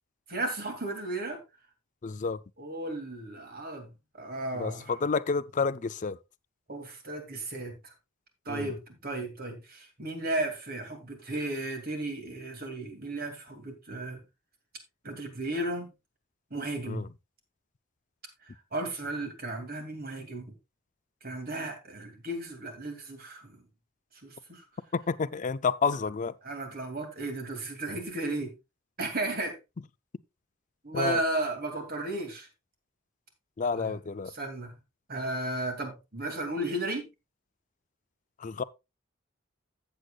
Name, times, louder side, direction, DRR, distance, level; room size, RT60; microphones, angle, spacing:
voice 1, 0.3-1.4 2.6-5.0 6.7-7.9 8.5-14.2 15.0-15.9 16.5-17.1 18.4-20.5 21.2-23.6 24.2-24.6 26.4-28.6 29.0-29.6 30.8-32.5 33.7-34.0 34.3-34.8 35.1-37.1, right 2 dB, 45° right, 2.6 m, -34 dB
voice 2, 2.0-2.4 4.5-6.2 8.5-8.7 16.9-17.1 24.9-26.3 30.9-31.2 33.6-34.3 38.4-38.6, left 5 dB, 35° left, 0.4 m, -30 dB
14.5 x 7.9 x 2.4 m
head